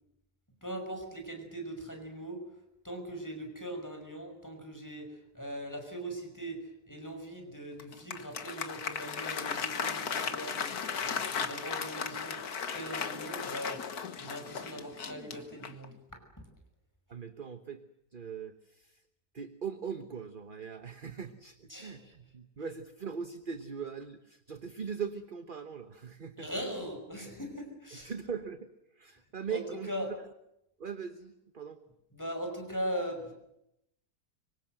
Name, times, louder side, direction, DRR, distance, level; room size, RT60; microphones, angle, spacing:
voice 1, 0.6-2.4 2.8-6.6 6.9-12.4 12.7-13.9 14.2-15.9 16.4-16.5 21.7-22.1 26.4-28.1 29.5-29.6 29.9-30.1 32.1-33.3, equal, 10° left, 4 dB, 5.6 m, -40 dB
Applause, 7.8-15.9, left 6 dB, 65° left, 1.9 m, -36 dB
voice 2, 17.1-17.8 18.1-19.0 19.3-26.5 27.9-29.9 30.8-31.8, right 6 dB, 35° right, 9 dB, 1.2 m, -40 dB
25.0 x 24.5 x 7.8 m, 0.83 s
omnidirectional pair, 1.8 m